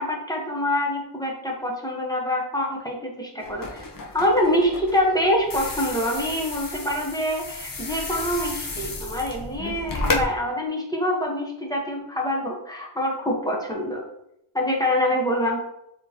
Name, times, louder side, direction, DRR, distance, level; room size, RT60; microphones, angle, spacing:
voice 1, 0.0-3.8 4.1-14.0 14.5-15.6, left 1 dB, 10° left, -2 dB, 1.1 m, -25 dB
sound 1, 3.4-10.2, left 2 dB, 40° left, 0.9 m, -32 dB
4.0 x 3.8 x 2.9 m, 0.78 s
wide cardioid pair, 80°, 49 cm